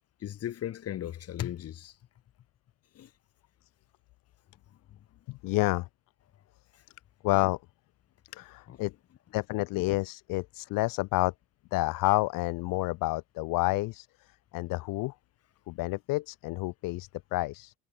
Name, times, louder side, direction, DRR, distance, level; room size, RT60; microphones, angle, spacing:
voice 1, 0.2-1.9 2.9-3.1 4.9-5.0 8.7-8.8, left 11 dB, 40° left, 6.6 m, -37 dB
voice 2, 5.3-5.9 7.2-7.6 8.3-8.9 9.3-11.3 11.7-15.1 15.7-17.7, left 21 dB, 60° left, 2.4 m, -29 dB
cardioid pair, 150°, 38 cm